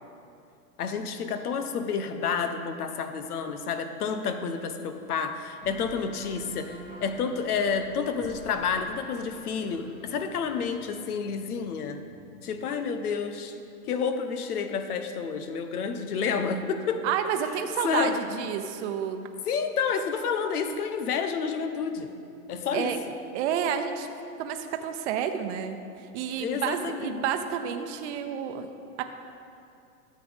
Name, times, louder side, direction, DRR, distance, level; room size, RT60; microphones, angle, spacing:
voice 1, 0.8-12.0 12.4-13.6 13.9-17.0 17.8-18.2 19.5-22.1 22.5-22.9 26.4-27.2, left 6 dB, 80° left, 8 dB, 1.0 m, -30 dB
sound 1, 5.6-13.0, equal, 20° left, 1.7 m, -50 dB
voice 2, 17.0-19.3 22.7-23.0 23.3-24.1 24.4-28.7 29.0-29.1, right 8 dB, 50° right, 6 dB, 0.8 m, -30 dB
13.0 x 7.7 x 3.5 m, 2.6 s
hypercardioid pair, 135°, 44 cm